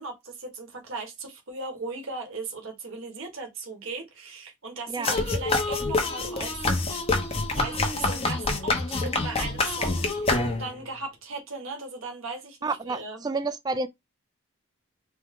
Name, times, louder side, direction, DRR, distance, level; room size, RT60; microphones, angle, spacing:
voice 1, 0.0-6.7 7.5-13.3, right 3 dB, 75° right, 1.5 m, -38 dB
sound 1, 5.0-10.9, left 3 dB, 30° left, 0.8 m, -26 dB
voice 2, 12.6-13.9, right 3 dB, 20° right, 0.3 m, -30 dB
4.4 x 2.2 x 3.6 m
head